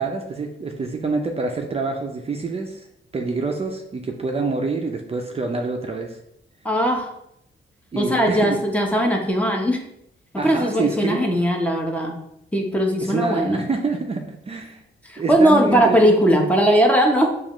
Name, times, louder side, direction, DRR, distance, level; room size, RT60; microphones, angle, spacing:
voice 1, 0.0-2.9 3.1-6.2 7.9-8.6 10.4-11.4 13.0-14.8 15.2-16.5, right 3 dB, 30° right, 2 dB, 0.5 m, -26 dB
voice 2, 6.6-7.1 8.0-9.8 10.4-12.2 12.5-13.6 15.1-17.3, equal, 5° left, 1 dB, 0.7 m, -19 dB
7.0 x 2.4 x 3.0 m, 0.77 s
wide cardioid pair, 120°, 21 cm